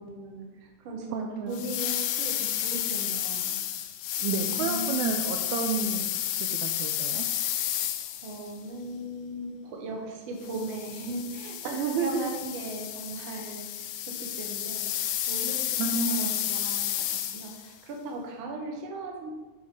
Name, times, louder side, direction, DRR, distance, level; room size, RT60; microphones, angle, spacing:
voice 1, 0.0-3.6 4.5-5.3 8.0-13.9 14.2-14.9 15.3-19.3, right 2 dB, 60° right, 1 dB, 1.4 m, -38 dB
voice 2, 1.1-1.6 4.2-6.1 6.4-7.2 11.6-12.3 15.8-16.3, right 5 dB, 80° right, 3 dB, 1.7 m, -30 dB
sound 1, 1.5-8.5 10.4-17.7, left 11 dB, 80° left, 2.2 m, -31 dB
7.1 x 4.7 x 5.3 m, 1.2 s
omnidirectional pair, 3.8 m